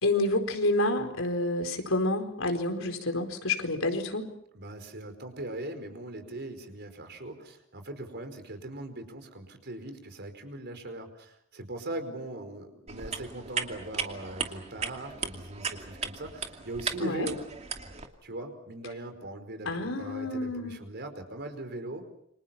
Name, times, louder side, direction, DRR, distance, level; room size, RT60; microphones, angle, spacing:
voice 1, 0.0-4.3 17.0-17.3 19.6-20.8, left 2 dB, 85° left, 6 dB, 4.4 m, -28 dB
voice 2, 4.5-17.4 18.2-22.0, right 1 dB, 55° right, 7 dB, 4.9 m, -40 dB
sound 1, 12.9-18.1, right 5 dB, 35° right, 2.6 m, -36 dB
29.0 x 26.0 x 5.9 m, 0.71 s
head